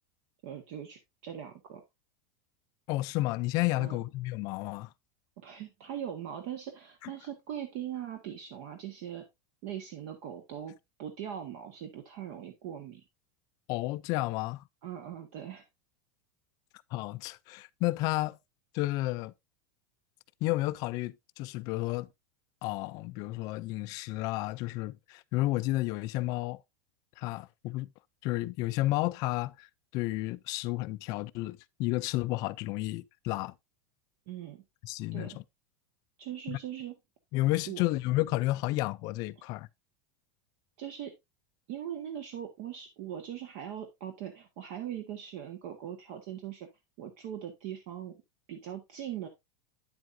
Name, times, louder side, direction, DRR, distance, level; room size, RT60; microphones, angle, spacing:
voice 1, 0.4-1.8 3.8-4.0 5.4-9.2 9.6-10.7 11.0-13.0 14.8-15.6 34.3-34.6 35.1-35.4 36.2-36.9 37.7-37.8 40.8-41.1 41.7-46.7 47.0-48.2 48.5-49.3, right 10 dB, 55° right, 1.5 m, -40 dB
voice 2, 2.9-4.9 7.0-7.1 13.7-14.6 16.9-18.4 18.7-19.3 20.4-22.1 22.6-26.6 27.2-27.9 28.2-29.7 29.9-33.5 34.8-35.4 36.5-36.6 37.3-39.7, left 18 dB, 40° left, 0.4 m, -31 dB
9.2 x 7.7 x 2.6 m
supercardioid pair, 160°, 10 cm